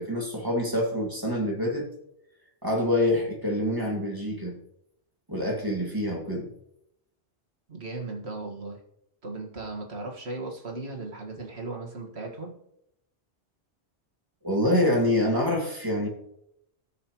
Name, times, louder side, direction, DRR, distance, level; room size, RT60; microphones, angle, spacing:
voice 1, 0.0-1.9 2.6-4.6 5.3-6.5 14.4-16.1, left 1 dB, 20° right, -1 dB, 2.1 m, -26 dB
voice 2, 7.7-8.8 9.2-12.5, right 3 dB, 70° right, 1 dB, 2.0 m, -37 dB
18.0 x 6.4 x 3.0 m, 0.78 s
omnidirectional pair, 1.1 m